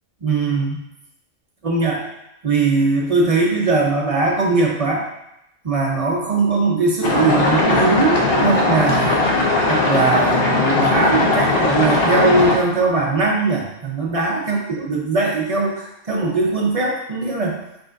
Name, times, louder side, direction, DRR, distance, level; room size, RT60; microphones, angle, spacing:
voice 1, 0.2-0.8 1.6-2.0 2.4-5.0 5.6-9.2 9.7-17.5, right 3 dB, 35° right, -2 dB, 0.6 m, -20 dB
sound 1, 7.0-12.6, left 2 dB, 55° left, 0.9 m, -18 dB
5.0 x 3.6 x 2.5 m, 0.85 s
omnidirectional pair, 1.3 m